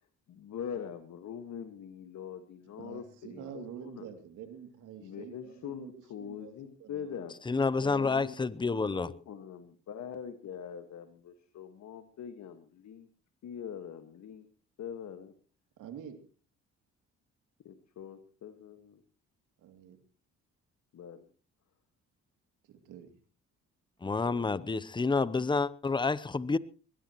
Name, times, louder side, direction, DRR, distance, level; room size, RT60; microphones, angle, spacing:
voice 1, 0.3-4.1 5.0-7.4 7.8-13.1 13.4-14.5 14.8-15.3 17.6-19.0 20.9-21.2 24.2-25.4, left 8 dB, 65° left, 1.7 m, -43 dB
voice 2, 2.8-7.2 7.7-7.8 15.8-16.2 19.6-20.0 22.7-23.1, right 8 dB, 90° right, 2.7 m, -47 dB
voice 3, 7.5-9.1 24.0-26.6, left 4 dB, 15° left, 0.7 m, -29 dB
22.0 x 18.5 x 3.1 m
cardioid pair, 90°, 30 cm